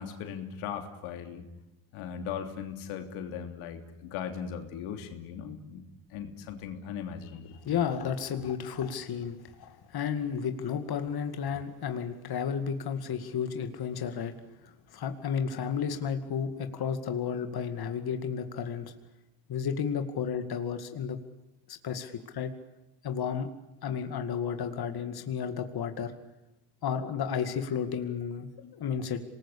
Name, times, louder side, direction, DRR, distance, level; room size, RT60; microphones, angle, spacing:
voice 1, 0.0-1.4 1.9-5.8 6.1-7.6 28.6-28.7, left 7 dB, 90° left, 6 dB, 3.3 m, -38 dB
voice 2, 7.6-14.3 14.6-18.9 19.5-21.2 21.7-22.5 23.0-23.5 23.8-26.1 26.8-29.2, left 7 dB, 50° left, 7 dB, 2.3 m, -32 dB
27.0 x 20.5 x 8.6 m, 0.95 s
cardioid pair, 100°, 48 cm